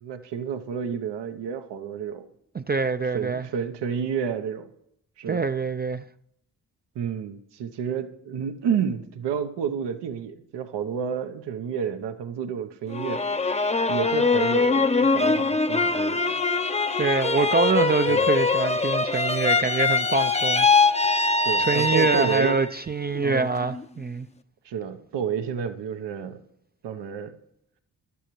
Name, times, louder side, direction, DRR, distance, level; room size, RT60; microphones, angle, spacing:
voice 1, 0.0-2.3 3.1-4.7 5.2-5.4 6.9-13.3 13.9-16.4 18.1-18.3 21.4-22.6 23.2-23.5 24.6-26.4 26.8-27.3, right 7 dB, 80° right, 0.9 m, -30 dB
voice 2, 2.5-3.5 5.3-6.0 17.0-20.7 21.2-24.3, right 4 dB, 25° right, 0.4 m, -25 dB
sound 1, 12.9-22.7 23.2-23.8, left 4 dB, 15° left, 0.6 m, -23 dB
sound 2, 16.2-21.9, right 4 dB, 55° right, 1.2 m, -39 dB
15.5 x 12.0 x 3.1 m
supercardioid pair, 45°, 41 cm